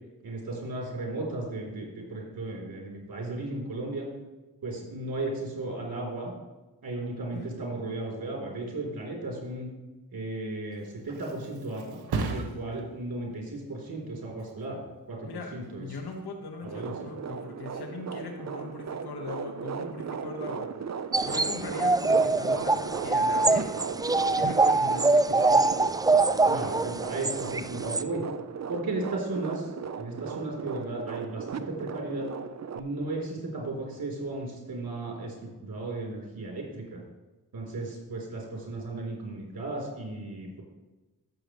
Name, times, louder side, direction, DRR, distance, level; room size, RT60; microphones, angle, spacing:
voice 1, 0.2-4.1 4.6-6.3 6.8-9.7 10.1-15.9 16.6-16.9 26.5-28.2 28.7-29.7 30.0-32.3 32.7-37.0 37.5-40.6, right 2 dB, 65° right, -2 dB, 3.6 m, -35 dB
Thump thud, 10.5-18.0 18.4-18.8, right 4 dB, 90° right, 1.0 m, -39 dB
voice 2, 15.8-20.7 21.2-23.7 24.3-25.7, left 3 dB, 85° left, 3 dB, 1.5 m, -39 dB
sound 1, 16.6-32.8, right 6 dB, 45° right, 0.7 m, -37 dB
sound 2, 21.1-28.0, right 3 dB, 10° right, 0.3 m, -24 dB
15.0 x 6.9 x 3.1 m, 1.1 s
cardioid pair, 45°, 37 cm